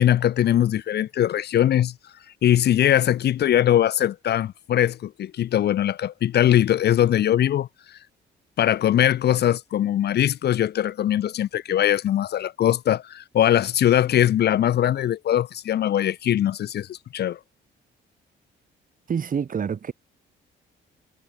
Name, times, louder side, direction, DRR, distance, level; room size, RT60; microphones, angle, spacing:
voice 1, 0.0-1.9 2.4-7.7 8.6-17.4, left 11 dB, 55° left, 0.6 m, -21 dB
voice 2, 19.1-19.9, right 7 dB, 45° right, 1.8 m, -27 dB
cardioid pair, 90°, 20 cm